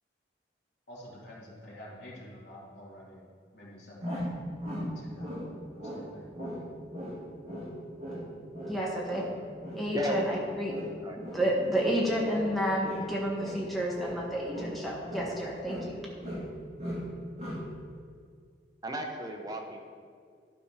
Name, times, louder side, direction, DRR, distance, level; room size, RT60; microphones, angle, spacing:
voice 1, 0.9-3.2 3.5-4.4 4.9-6.2, equal, 75° left, -5 dB, 2.5 m, -48 dB
sound 1, 4.0-5.5 5.8-6.1 6.3-6.6 6.9-12.5 12.8-13.7 13.9-15.4 15.6-16.5 16.8-17.1 17.4-17.7, equal, 35° right, 2.5 m, -38 dB
voice 2, 8.6-9.2 9.8-10.7 11.3-15.9, equal, ahead, -5 dB, 1.5 m, -30 dB
voice 3, 18.8-19.8, right 1 dB, 20° right, 2 dB, 0.9 m, -34 dB
12.0 x 4.3 x 5.6 m, 2.1 s
head